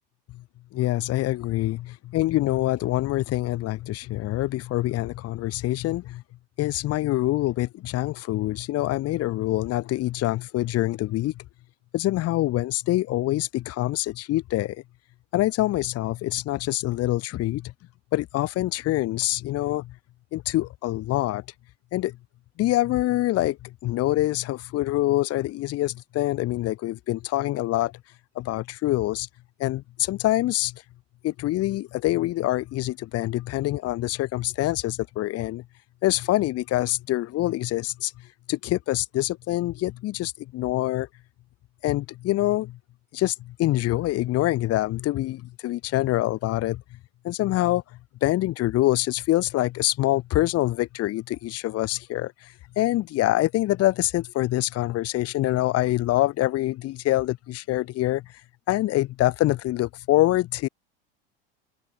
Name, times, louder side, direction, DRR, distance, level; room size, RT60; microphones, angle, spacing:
voice 1, 0.7-6.2 6.6-11.4 11.9-14.8 15.3-17.7 18.1-19.9 20.3-21.4 21.9-22.2 22.6-28.0 28.4-29.3 29.6-30.8 31.2-35.6 36.0-38.1 38.5-41.1 41.8-42.8 43.1-46.8 47.2-47.8 48.2-58.2 58.7-60.7, left 16 dB, 55° left, 4.5 m, -25 dB
hypercardioid pair, 80°, 30 cm